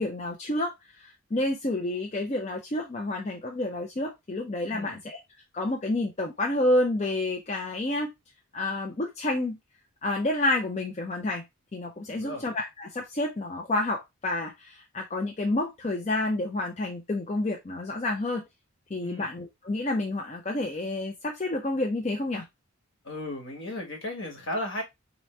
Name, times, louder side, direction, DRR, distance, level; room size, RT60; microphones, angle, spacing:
voice 1, 0.0-5.2 5.5-8.1 8.5-9.6 10.0-11.4 11.7-18.4 18.9-22.4, left 2 dB, 30° left, 0.5 m, -29 dB
voice 2, 4.7-5.0 12.1-12.4 19.0-19.3 23.0-24.8, left 1 dB, 55° left, 1.3 m, -35 dB
4.2 x 3.0 x 3.1 m
head